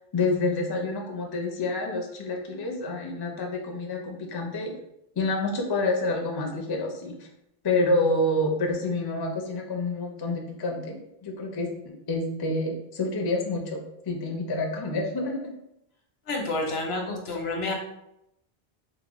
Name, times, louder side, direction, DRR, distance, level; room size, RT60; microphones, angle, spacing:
voice 1, 0.1-4.7 5.2-7.3 7.6-11.0 11.2-11.7 12.1-13.8 14.1-15.5, left 2 dB, 40° left, 1 dB, 0.3 m, -28 dB
voice 2, 16.3-17.7, left 2 dB, 80° left, 1 dB, 1.0 m, -29 dB
3.7 x 2.0 x 2.9 m, 0.82 s
omnidirectional pair, 1.0 m